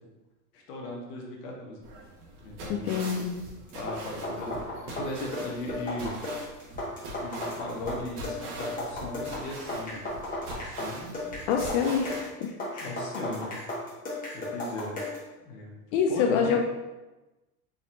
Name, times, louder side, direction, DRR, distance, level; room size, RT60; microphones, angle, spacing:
voice 1, 0.5-1.8 2.4-3.0 3.7-6.2 7.2-10.0 10.5-11.1 12.8-13.7 14.3-15.0 15.5-15.7 16.1-16.6, left 1 dB, 75° left, -1 dB, 1.3 m, -37 dB
sound 1, 1.8-12.2, right 1 dB, 50° right, 1.3 m, -43 dB
voice 2, 2.7-3.4 11.5-12.9 15.9-16.6, left 6 dB, 50° left, 2 dB, 0.5 m, -26 dB
sound 2, 3.7-15.3, left 1 dB, 20° left, 1.4 m, -35 dB
4.2 x 4.0 x 2.5 m, 1.1 s
supercardioid pair, 115°, 47 cm